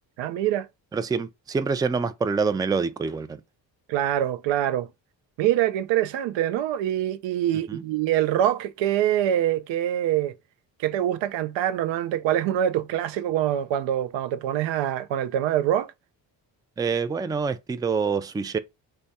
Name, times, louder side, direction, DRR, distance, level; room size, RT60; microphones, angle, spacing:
voice 1, 0.2-0.7 3.9-4.9 5.4-10.3 10.8-15.9, right 11 dB, 90° right, 0.5 m, -24 dB
voice 2, 0.9-3.4 7.7-7.8 16.8-18.6, right 5 dB, 10° right, 0.3 m, -26 dB
3.4 x 2.2 x 4.0 m
cardioid pair, 70°, 43 cm